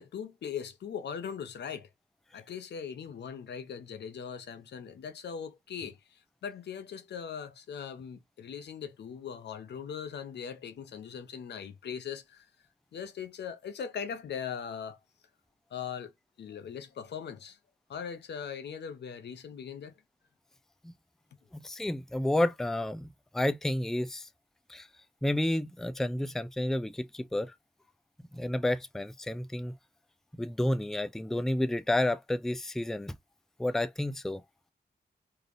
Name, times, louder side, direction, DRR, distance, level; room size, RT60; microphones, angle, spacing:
voice 1, 0.0-1.9 2.3-6.0 6.4-12.5 12.9-15.0 15.7-16.1 16.4-17.6 17.9-19.9, left 7 dB, 80° left, 0.6 m, -40 dB
voice 2, 21.5-24.3 24.7-24.9 25.2-27.5 28.3-29.7 30.4-33.2 33.6-34.4, left 1 dB, ahead, 0.4 m, -30 dB
3.2 x 2.6 x 2.5 m
cardioid pair, 65°, 18 cm